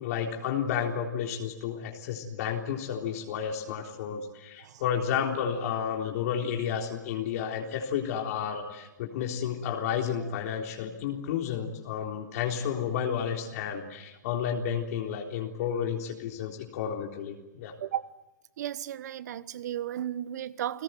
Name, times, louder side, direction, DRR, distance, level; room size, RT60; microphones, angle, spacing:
voice 1, 0.0-17.7, left 8 dB, 55° left, 3.8 m, -31 dB
voice 2, 17.8-18.1 18.6-20.8, right 11 dB, 60° right, 1.2 m, -34 dB
30.0 x 18.0 x 9.4 m
hypercardioid pair, 130°, 10 cm